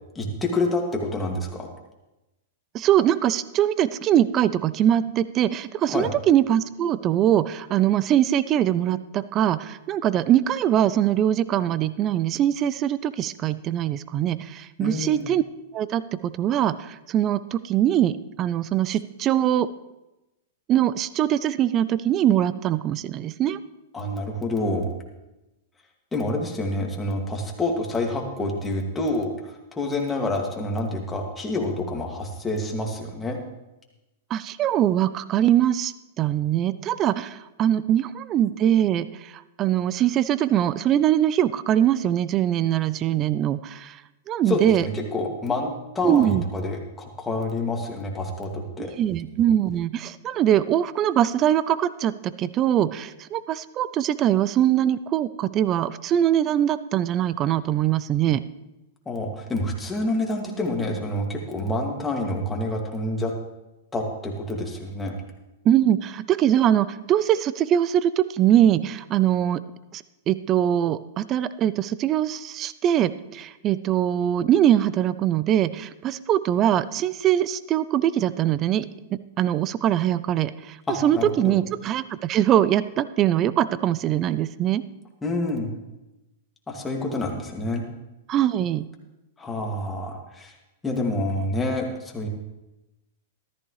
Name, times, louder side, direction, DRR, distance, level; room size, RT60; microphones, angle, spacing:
voice 1, 0.1-1.7 5.9-6.1 14.8-15.3 23.9-24.9 26.1-33.4 44.5-48.9 59.1-63.3 63.9-65.1 80.9-81.5 85.2-85.7 86.7-87.8 89.4-90.5 90.8-92.3, left 2 dB, 15° left, 0 dB, 2.3 m, -28 dB
voice 2, 2.7-15.4 15.7-19.7 20.7-23.6 34.3-39.3 39.6-44.0 44.3-44.9 46.0-46.4 48.8-58.4 65.6-69.6 69.9-78.9 79.1-80.8 81.0-84.8 88.3-88.9, right 11 dB, 35° right, 16 dB, 0.5 m, -22 dB
13.5 x 13.5 x 3.2 m, 1.0 s
hypercardioid pair, 120°, 0 cm